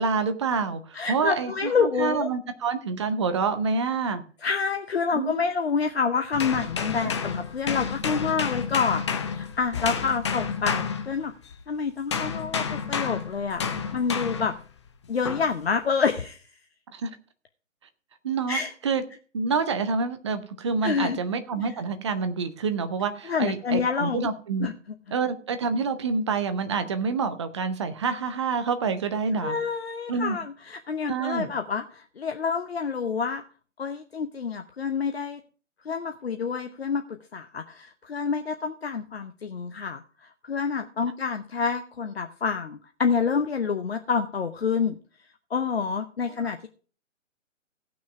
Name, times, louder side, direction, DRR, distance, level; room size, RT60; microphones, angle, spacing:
voice 1, 0.0-4.2 5.1-5.3 7.0-7.1 16.9-17.1 18.2-18.6 18.8-19.0 19.3-24.7 25.1-29.6 30.1-30.4 31.1-31.5, right 5 dB, 20° right, 9 dB, 0.8 m, -27 dB
voice 2, 0.9-2.3 4.4-11.3 11.7-13.6 13.9-14.5 15.1-16.4 18.5-18.7 20.8-21.2 21.6-21.8 23.2-24.3 24.6-24.7 29.4-33.4 33.8-35.4 35.8-37.1 37.3-45.0 45.5-46.7, left 5 dB, 50° left, 7 dB, 0.8 m, -28 dB
sound 1, 6.3-11.6 12.1-14.6 15.3-15.5, left 6 dB, 20° left, 0.7 m, -30 dB
16.5 x 6.3 x 4.7 m, 0.40 s
figure-of-eight pair, 140°, 39 cm